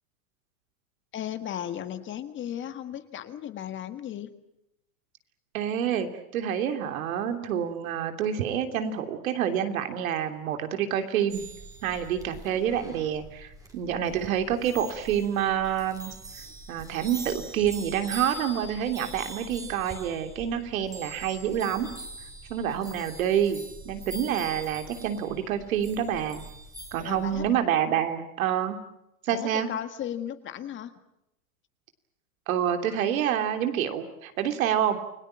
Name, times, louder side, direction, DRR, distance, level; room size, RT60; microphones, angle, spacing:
voice 1, 1.1-4.3 27.0-27.5 29.3-30.9, left 10 dB, 25° left, 10 dB, 1.7 m, -35 dB
voice 2, 5.5-6.1 6.3-11.4 11.8-16.1 16.7-21.9 22.5-26.4 26.9-28.8 29.3-29.7 32.5-35.0, right 9 dB, 70° right, 7 dB, 3.3 m, -27 dB
sound 1, 11.3-27.6, right 2 dB, 10° right, 3.5 m, -43 dB
29.0 x 19.0 x 8.9 m, 0.84 s
hypercardioid pair, 130°, 42 cm